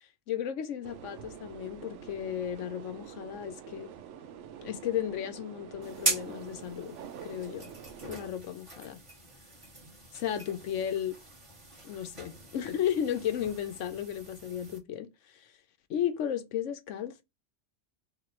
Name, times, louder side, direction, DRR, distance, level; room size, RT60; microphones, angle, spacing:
voice 1, 0.3-3.9 4.6-7.0 7.2-7.7 8.1-9.0 10.1-11.2 11.8-15.1 15.3-15.5 15.9-17.2, left 10 dB, 85° left, 1.1 m, -34 dB
sound 1, 0.8-8.3, right 9 dB, 80° right, 0.9 m, -46 dB
sound 2, 5.8-14.8, right 3 dB, 25° right, 1.3 m, -40 dB
3.2 x 3.0 x 4.3 m
omnidirectional pair, 1.2 m